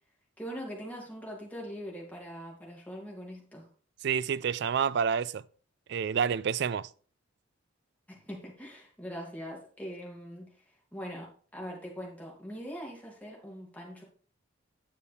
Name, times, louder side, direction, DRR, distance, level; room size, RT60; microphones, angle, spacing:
voice 1, 0.4-3.7 8.1-10.5 10.9-11.3 11.5-14.0, equal, 10° left, 2.6 m, -42 dB
voice 2, 4.0-5.4 5.9-6.9, right 7 dB, 60° right, 0.4 m, -28 dB
10.0 x 8.1 x 3.5 m
head